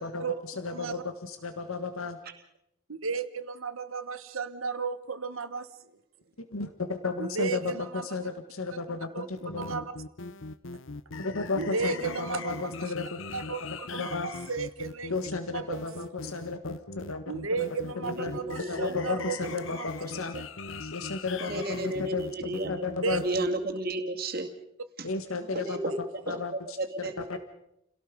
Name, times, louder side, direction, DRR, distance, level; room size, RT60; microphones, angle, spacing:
voice 1, 0.0-0.4 0.7-1.0 2.9-5.7 7.2-8.3 9.1-9.3 9.6-9.9 11.5-12.9 13.3-15.8 17.3-19.8 23.0-23.2, right 4 dB, 80° right, 11 dB, 1.4 m, -34 dB
voice 2, 0.6-2.2 6.5-7.7 8.0-9.8 11.2-13.2 14.0-14.3 15.1-17.2 18.0-18.4 18.7-20.3 20.8-21.6 22.0-22.2 22.7-23.2 25.0-25.8 26.3-26.5 27.0-27.4, left 4 dB, 90° left, 8 dB, 1.6 m, -33 dB
sound 1, 9.4-23.5, left 3 dB, 70° left, 0.9 m, -40 dB
voice 3, 18.0-18.9 19.3-19.6 20.1-20.4 21.4-24.5 25.0-25.1 25.4-27.4, right 2 dB, 45° right, 4 dB, 2.3 m, -34 dB
30.0 x 17.5 x 5.3 m, 0.78 s
head